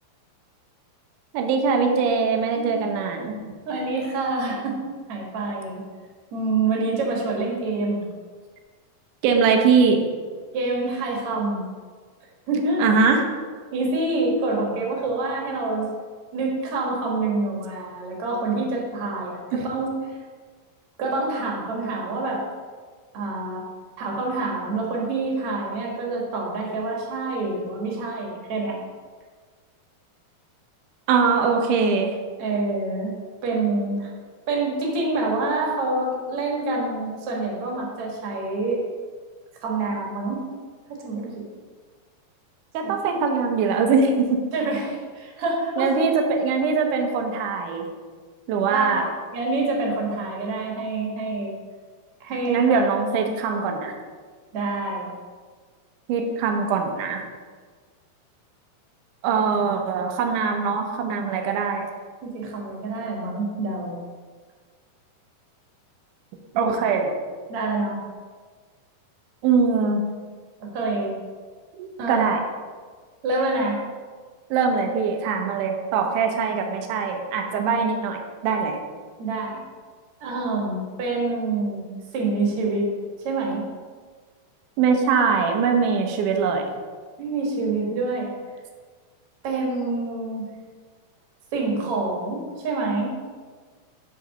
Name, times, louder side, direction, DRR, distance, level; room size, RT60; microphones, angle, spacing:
voice 1, 1.3-3.3 9.2-10.0 12.8-13.2 19.5-19.6 31.1-32.1 42.7-44.4 45.8-47.9 48.5-49.0 52.5-53.9 56.1-57.2 59.2-61.9 66.5-67.1 69.4-70.0 71.8-72.4 74.5-78.8 84.8-86.7, right 5 dB, 70° right, 3 dB, 2.1 m, -22 dB
voice 2, 3.7-4.8 5.1-5.8 6.3-8.0 10.5-11.6 12.5-12.8 13.7-15.9 16.3-19.9 21.0-22.4 23.1-23.7 24.0-28.8 32.4-33.1 33.4-34.1 34.5-38.8 39.6-40.4 40.9-41.3 42.8-42.9 44.5-46.1 48.7-49.1 49.3-51.5 52.2-52.8 53.4-53.6 54.5-55.1 62.2-64.0 67.5-68.0 70.6-71.1 72.0-72.3 73.2-73.8 79.2-79.6 80.2-82.9 83.2-83.6 87.2-88.3 89.4-90.5 91.5-93.1, right 3 dB, 50° right, -1 dB, 2.0 m, -26 dB
7.6 x 4.0 x 6.5 m, 1.5 s
omnidirectional pair, 4.3 m